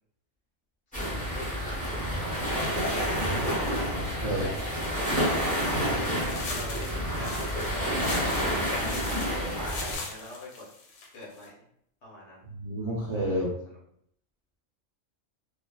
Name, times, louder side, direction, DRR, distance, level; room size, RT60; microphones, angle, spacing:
sound 1, 0.9-9.9, equal, 5° left, 0.8 m, -29 dB
voice 1, 1.3-2.0 2.4-2.7 4.2-9.0 9.5-10.6 11.1-11.6 12.0-12.4 13.3-13.4, left 1 dB, 60° left, -5 dB, 1.1 m, -43 dB
voice 2, 3.6-4.5 12.4-13.5, equal, 40° right, -7 dB, 0.4 m, -31 dB
sound 2, 6.3-11.5, left 4 dB, 85° left, 1.0 m, -40 dB
2.5 x 2.3 x 2.2 m, 0.71 s
omnidirectional pair, 1.4 m